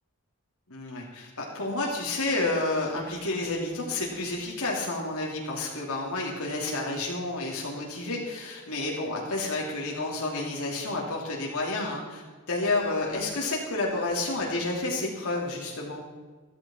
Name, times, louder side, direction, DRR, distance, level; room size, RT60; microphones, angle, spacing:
voice 1, 0.7-16.0, left 2 dB, 70° left, -3 dB, 2.8 m, -30 dB
14.5 x 14.0 x 4.4 m, 1.3 s
head